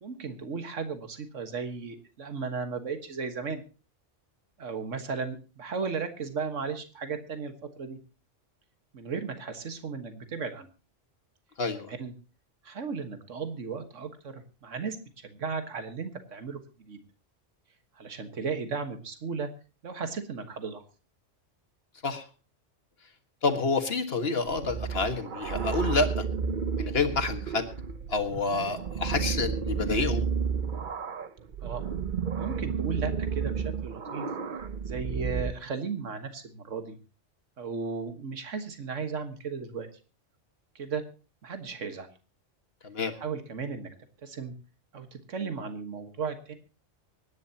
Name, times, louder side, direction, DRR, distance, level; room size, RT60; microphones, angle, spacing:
voice 1, 0.0-3.6 4.6-8.0 8.9-10.7 11.9-12.1 12.6-15.0 15.2-16.6 16.9-17.0 18.0-19.5 19.8-20.8 31.6-31.8 32.4-34.3 34.8-37.0 37.6-39.9 40.8-41.0 41.4-42.1 43.2-43.9 44.2-44.5 44.9-46.5, right 5 dB, 80° right, 8 dB, 1.9 m, -35 dB
voice 2, 23.4-26.2 26.8-27.7 28.1-30.3 42.8-43.1, left 3 dB, 55° left, 6 dB, 1.8 m, -28 dB
sound 1, 24.5-35.5, right 6 dB, 45° right, 0.9 m, -32 dB
24.5 x 11.0 x 2.9 m, 0.34 s
omnidirectional pair, 1.3 m